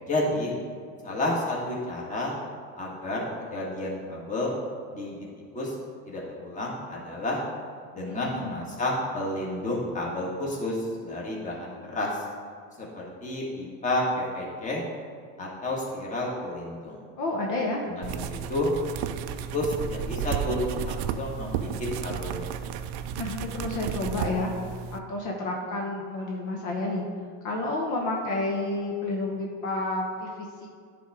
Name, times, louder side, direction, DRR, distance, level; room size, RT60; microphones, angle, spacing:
voice 1, 0.1-0.5 1.0-2.4 2.8-4.6 4.9-5.3 5.5-5.7 6.0-7.4 7.9-12.1 12.8-14.8 15.4-17.0 17.9-18.7 19.5-22.5, left 1 dB, 20° left, -3 dB, 1.7 m, -31 dB
voice 2, 8.0-8.4 17.2-17.8 23.1-24.5 24.9-27.0 27.4-30.7, left 2 dB, 55° left, -1 dB, 1.1 m, -30 dB
sound 1, 18.0-25.0, right 9 dB, 55° right, 0.5 m, -33 dB
9.9 x 3.5 x 4.9 m, 2.2 s
cardioid pair, 135°, 36 cm